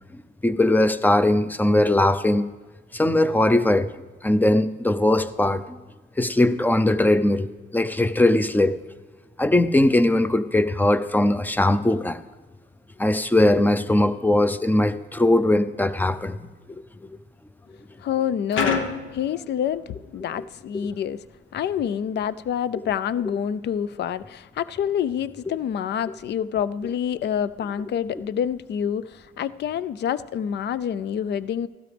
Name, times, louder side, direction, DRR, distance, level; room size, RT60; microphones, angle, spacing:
voice 1, 0.1-2.4 2.9-3.9 4.2-5.6 6.2-7.5 7.7-8.8 9.4-12.2 13.0-16.4, left 1 dB, 10° left, 12 dB, 0.5 m, -20 dB
voice 2, 18.0-18.8 19.1-21.2 21.5-31.7, left 9 dB, 60° left, 17 dB, 0.5 m, -27 dB
sound 1, 18.5-20.1, left 5 dB, 85° left, 1.1 m, -27 dB
14.5 x 12.5 x 3.4 m, 1.3 s
cardioid pair, 90°, 20 cm